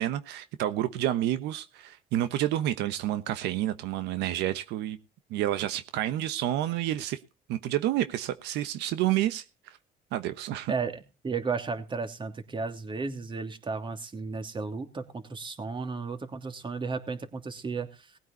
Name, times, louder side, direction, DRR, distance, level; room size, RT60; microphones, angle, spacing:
voice 1, 0.0-5.0 5.3-7.2 7.5-9.8 10.1-10.7, right 13 dB, 90° right, 11 dB, 1.2 m, -29 dB
voice 2, 10.7-18.1, right 4 dB, 30° right, 7 dB, 2.9 m, -34 dB
19.5 x 9.1 x 4.1 m, 0.31 s
cardioid pair, 110°, 17 cm